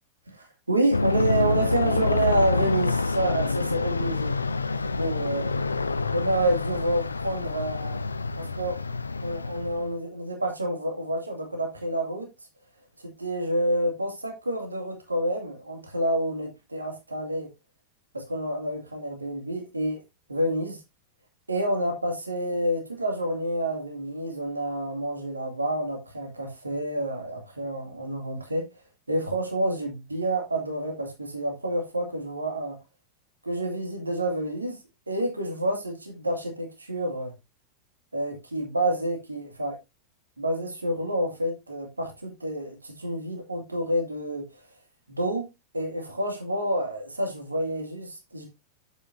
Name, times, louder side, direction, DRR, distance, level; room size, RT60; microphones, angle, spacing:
voice 1, 0.3-4.4 5.0-5.5 6.1-8.0 8.4-8.8 9.2-12.3 13.0-17.5 18.1-20.0 20.3-20.8 21.5-28.7 29.1-32.8 33.4-34.8 35.1-37.3 38.1-39.8 40.4-44.6 45.1-45.4 45.7-48.4, right 1 dB, 80° right, 2.2 m, -28 dB
Aircraft, 0.9-9.9, left 3 dB, 80° left, 0.5 m, -27 dB
8.0 x 7.9 x 2.7 m
figure-of-eight pair, 90°, 0 cm